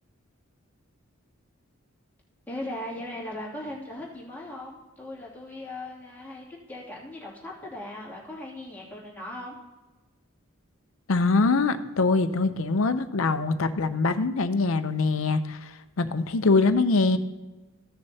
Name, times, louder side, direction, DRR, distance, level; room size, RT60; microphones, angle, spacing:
voice 1, 2.5-9.6, left 1 dB, 10° left, -6 dB, 2.5 m, -38 dB
voice 2, 11.1-17.2, left 3 dB, 70° left, 10 dB, 0.6 m, -23 dB
15.5 x 6.6 x 2.8 m, 1.2 s
head